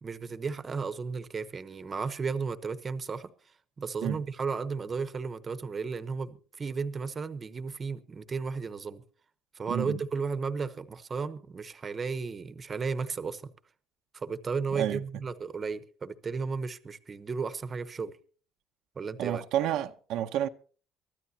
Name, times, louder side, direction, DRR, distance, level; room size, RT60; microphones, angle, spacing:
voice 1, 0.0-3.3 3.8-9.0 9.5-13.5 14.1-18.1 19.0-19.4, right 5 dB, 25° right, 1.0 m, -34 dB
voice 2, 9.7-10.0 14.7-15.0 19.2-20.5, right 11 dB, 70° right, 0.8 m, -30 dB
23.5 x 13.5 x 2.8 m
cardioid pair, 130°, 0 cm